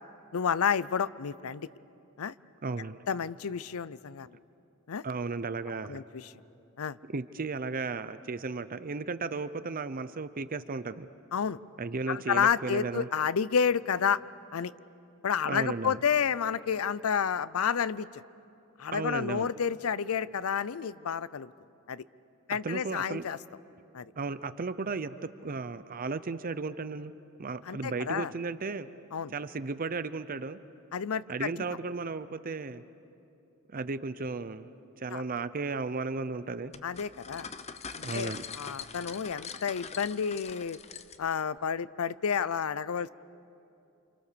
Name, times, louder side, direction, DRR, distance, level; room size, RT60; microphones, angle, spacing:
voice 1, 0.3-1.7 2.2-2.3 3.1-4.3 4.9-5.0 5.9-6.3 6.8-7.0 11.3-11.6 12.1-14.2 14.5-14.7 15.2-18.2 18.8-21.5 21.9-22.0 22.5-23.4 23.9-24.1 27.7-28.3 29.1-29.3 30.9-31.5 35.1-35.2 36.8-37.5 38.1-40.8 41.2-43.1, left 7 dB, 80° left, 18 dB, 0.5 m, -30 dB
voice 2, 2.6-3.0 5.0-6.0 7.1-11.1 11.8-13.1 15.5-16.0 18.9-19.5 22.5-23.2 24.2-25.2 25.4-27.1 27.4-28.9 29.3-30.6 31.3-32.8 33.7-34.7 35.0-36.7 38.0-38.5, right 4 dB, 40° right, 13 dB, 0.7 m, -34 dB
sound 1, 36.7-41.4, left 6 dB, 30° left, 0.7 m, -43 dB
29.0 x 27.0 x 6.8 m, 2.7 s
head